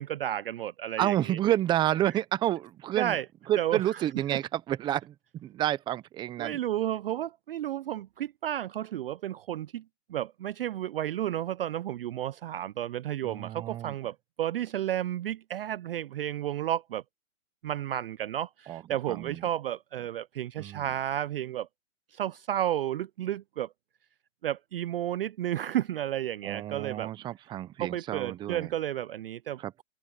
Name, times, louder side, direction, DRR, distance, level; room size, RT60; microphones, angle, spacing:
voice 1, 0.0-1.4 3.0-3.3 3.6-4.0 4.3-4.4 6.4-9.8 10.1-17.0 17.6-21.7 22.1-23.7 24.4-27.1 27.8-29.8, right 12 dB, 50° right, 0.4 m, -32 dB
voice 2, 1.0-3.2 3.5-6.6 13.2-13.9 18.7-18.8 19.1-19.4 20.6-20.8 26.4-28.7 29.6-29.8, right 13 dB, 10° right, 0.7 m, -30 dB
open air
hypercardioid pair, 140°, 39 cm